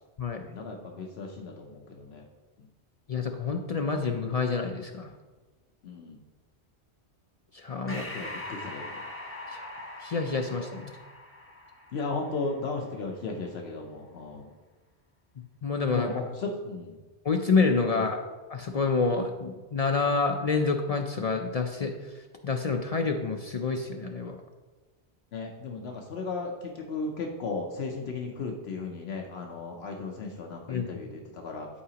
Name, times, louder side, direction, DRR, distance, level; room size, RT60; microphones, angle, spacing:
voice 1, 0.4-2.2 2.6-2.7 5.8-6.2 7.9-9.1 11.9-14.5 15.9-17.0 17.9-18.0 25.3-31.7, left 3 dB, 70° left, 1 dB, 1.0 m, -35 dB
voice 2, 3.1-5.1 7.5-8.0 9.5-10.9 15.6-16.1 17.2-18.2 18.5-24.4 30.7-30.9, left 4 dB, 50° left, 4 dB, 0.4 m, -28 dB
Breathing, 7.9-12.8, left 2 dB, 10° left, 1.0 m, -42 dB
11.0 x 4.8 x 2.9 m, 1.3 s
omnidirectional pair, 1.1 m